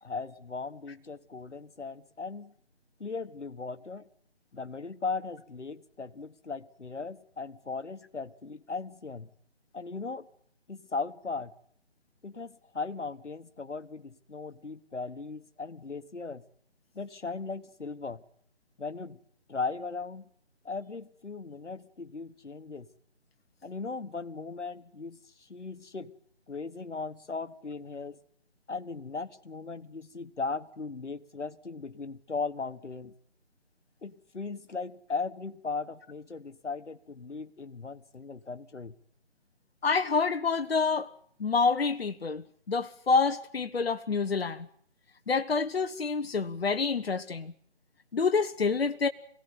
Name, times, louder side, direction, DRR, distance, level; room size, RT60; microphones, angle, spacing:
voice 1, 0.0-2.5 3.0-4.0 4.5-9.3 9.7-10.3 10.7-11.5 12.2-16.4 16.9-18.2 18.8-19.2 19.5-20.3 20.6-22.9 23.6-26.1 26.5-28.2 28.7-33.1 34.0-38.9, left 4 dB, 85° left, 1.5 m, -38 dB
voice 2, 39.8-41.1 41.4-44.7 45.3-47.5 48.1-49.1, left 4 dB, 60° left, 1.0 m, -27 dB
23.0 x 16.5 x 9.5 m
figure-of-eight pair, 160°, 35 cm